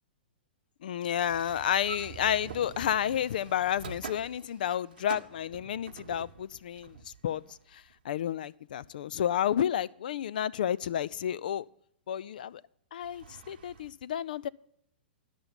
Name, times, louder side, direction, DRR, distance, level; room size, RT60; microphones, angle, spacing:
voice 1, 0.8-11.7 12.1-12.6 12.9-14.5, left 10 dB, 55° left, 0.3 m, -31 dB
sound 1, 1.3-8.0 13.0-13.9, right 6 dB, 60° right, 1.0 m, -46 dB
10.5 x 6.7 x 6.9 m
figure-of-eight pair, 110°, 6 cm